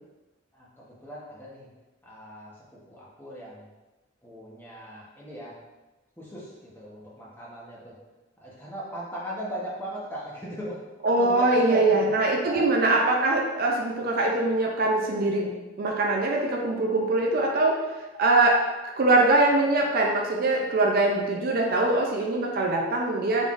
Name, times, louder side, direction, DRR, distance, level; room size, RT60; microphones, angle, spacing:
voice 1, 0.5-1.7 2.0-3.7 4.2-5.5 6.2-8.0 8.4-10.8 11.0-12.1 12.4-12.7, equal, 10° left, -6 dB, 0.8 m, -38 dB
voice 2, 11.0-15.5 15.8-17.8 18.2-23.5, right 2 dB, 50° right, 0 dB, 0.4 m, -23 dB
3.8 x 3.6 x 2.4 m, 1.1 s
head